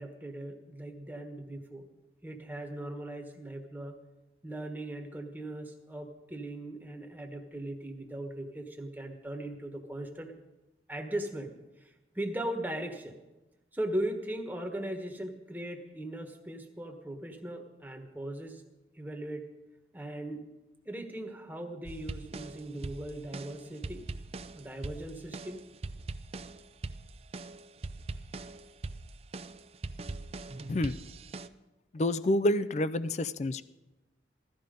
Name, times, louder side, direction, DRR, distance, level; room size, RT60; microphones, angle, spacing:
voice 1, 0.0-1.9 2.2-4.0 4.4-10.3 10.9-11.5 11.8-13.2 13.7-18.6 18.9-19.5 19.9-20.4 20.8-24.0 24.5-25.6, right 1 dB, 10° right, 4 dB, 1.3 m, -39 dB
sound 1, 21.8-31.5, right 3 dB, 35° right, 0.4 m, -42 dB
voice 2, 31.9-33.6, left 1 dB, 40° left, 13 dB, 0.4 m, -28 dB
16.5 x 13.0 x 5.2 m, 1.1 s
head